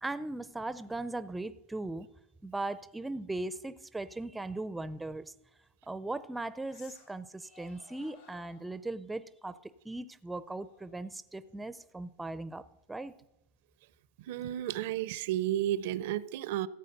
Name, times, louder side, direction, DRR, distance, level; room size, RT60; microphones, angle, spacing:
voice 1, 0.0-2.1 2.4-5.3 5.9-13.1, right 2 dB, 5° right, 15 dB, 0.4 m, -38 dB
sound 1, 4.9-5.0 6.6-7.2 7.4-8.8 10.5-12.0, left 4 dB, 60° left, 4.5 m, -59 dB
voice 2, 14.3-16.7, right 12 dB, 65° right, 19 dB, 0.5 m, -32 dB
14.0 x 8.3 x 6.5 m, 0.90 s
supercardioid pair, 130°, 0 cm